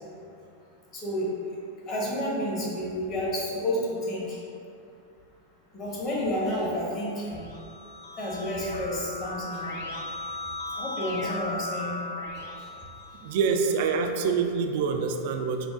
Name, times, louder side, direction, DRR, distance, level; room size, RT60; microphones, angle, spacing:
voice 1, 0.9-1.3 1.9-4.4 5.7-7.4 8.2-9.7 10.7-12.0 12.3-12.7, left 1 dB, 35° left, -5 dB, 1.1 m, -30 dB
Keyboard (musical), 7.1-13.7, left 2 dB, 60° left, 0.8 m, -37 dB
voice 2, 13.2-15.7, right 5 dB, 50° right, 5 dB, 0.3 m, -26 dB
5.4 x 2.1 x 3.6 m, 2.5 s
figure-of-eight pair, 90°, 0 cm